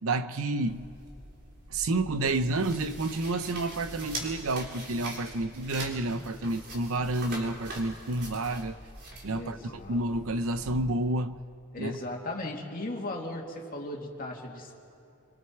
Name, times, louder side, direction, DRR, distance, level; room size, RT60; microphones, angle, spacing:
voice 1, 0.0-0.9 1.7-8.8 9.2-11.4 11.8-12.0, right 2 dB, 75° right, 0.8 m, -30 dB
sound 1, 0.7-10.8, right 1 dB, 50° right, 4.2 m, -43 dB
voice 2, 9.3-10.0 11.7-14.7, left 2 dB, 40° left, 2.6 m, -37 dB
27.0 x 25.0 x 4.6 m
head